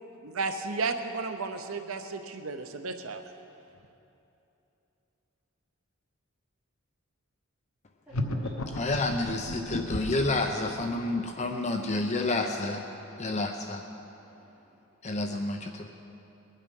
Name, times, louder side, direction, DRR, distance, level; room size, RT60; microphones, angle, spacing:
voice 1, 0.2-3.2, right 4 dB, 80° right, 7 dB, 0.8 m, -33 dB
voice 2, 8.0-8.9 9.4-10.1 10.6-11.4 12.0-12.1 12.9-13.4 14.0-14.7, equal, 5° right, -9 dB, 4.1 m, -50 dB
sound 1, 8.1-10.3, left 1 dB, 85° left, 1.0 m, -33 dB
voice 3, 8.7-12.9 13.2-13.8 15.0-15.9, left 2 dB, 35° left, 4 dB, 0.7 m, -29 dB
22.0 x 9.2 x 5.4 m, 2.9 s
head